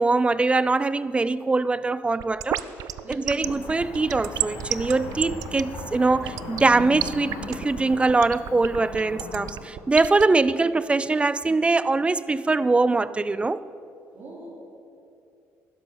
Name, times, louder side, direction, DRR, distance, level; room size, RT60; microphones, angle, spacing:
voice 1, 0.0-2.6 3.1-13.6, right 3 dB, 20° right, 0.4 m, -22 dB
sound 1, 2.2-10.2, right 13 dB, 70° right, 0.5 m, -30 dB
voice 2, 3.0-3.5 14.1-14.5, right 2 dB, 45° right, 4.0 m, -39 dB
Cricket / Motor vehicle (road), 3.4-9.7, left 4 dB, 90° left, 1.9 m, -39 dB
Explosion, 4.4-5.3 5.6-6.0 6.9-7.2 8.0-8.4 9.2-9.9 10.4-10.6, equal, 5° left, 3.3 m, -48 dB
12.0 x 10.5 x 6.7 m
cardioid pair, 85°, 6 cm